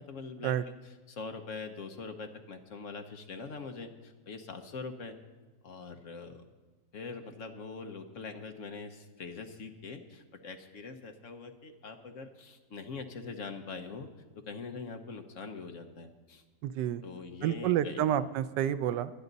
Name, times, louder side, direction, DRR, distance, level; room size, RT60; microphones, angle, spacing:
voice 1, 0.0-0.6 0.8-5.2 5.6-6.4 6.9-14.1 14.3-16.4 17.0-18.0, left 4 dB, 55° left, 6 dB, 1.1 m, -43 dB
voice 2, 16.6-17.0 17.4-19.1, right 11 dB, 90° right, 14 dB, 1.2 m, -29 dB
22.0 x 9.4 x 4.0 m, 1.3 s
omnidirectional pair, 1.8 m